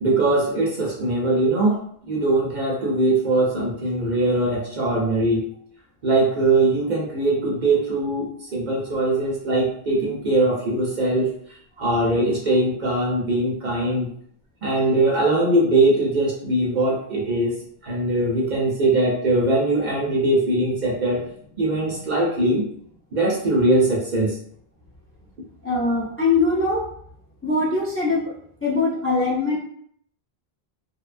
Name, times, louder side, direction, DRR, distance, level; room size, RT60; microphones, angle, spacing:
voice 1, 0.0-1.8 2.1-5.4 6.0-11.3 11.8-14.1 14.6-17.5 17.8-21.2 21.6-22.7 23.1-24.4, right 2 dB, 55° right, -3 dB, 0.6 m, -21 dB
voice 2, 25.6-26.8 27.4-28.2 28.6-29.6, left 3 dB, 15° left, -6 dB, 0.5 m, -21 dB
2.6 x 2.1 x 2.4 m, 0.65 s
omnidirectional pair, 1.0 m